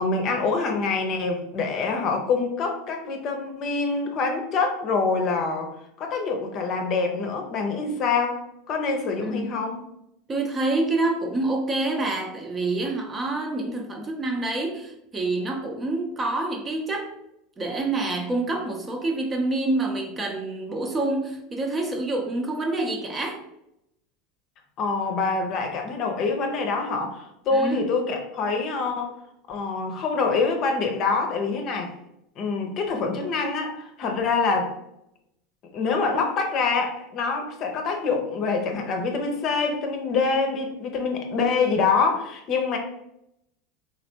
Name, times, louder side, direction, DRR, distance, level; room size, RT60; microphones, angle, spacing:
voice 1, 0.0-5.7 6.0-8.4 8.7-9.8 24.8-29.1 29.5-31.9 32.4-34.7 35.7-42.8, left 4 dB, 50° left, 3 dB, 0.7 m, -25 dB
voice 2, 9.2-9.5 10.3-17.1 17.6-23.4 27.5-27.8, right 2 dB, 25° right, 2 dB, 0.7 m, -27 dB
3.3 x 2.4 x 2.8 m, 0.80 s
hypercardioid pair, 85°, 0 cm